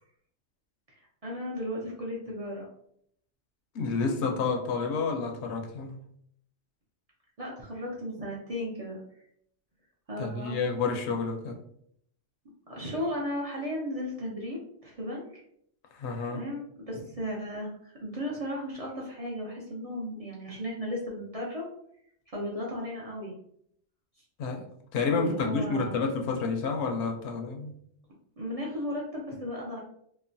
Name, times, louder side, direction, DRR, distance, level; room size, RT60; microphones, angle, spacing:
voice 1, 1.2-2.7 7.4-9.0 10.1-10.6 12.7-15.3 16.3-21.6 22.3-23.3 25.2-26.0 28.4-29.8, equal, 45° right, -4 dB, 0.5 m, -35 dB
voice 2, 3.7-6.0 10.2-11.6 15.9-16.4 24.4-24.6 24.9-27.7, left 4 dB, 80° left, 4 dB, 0.8 m, -29 dB
3.0 x 2.1 x 2.5 m, 0.70 s
omnidirectional pair, 1.1 m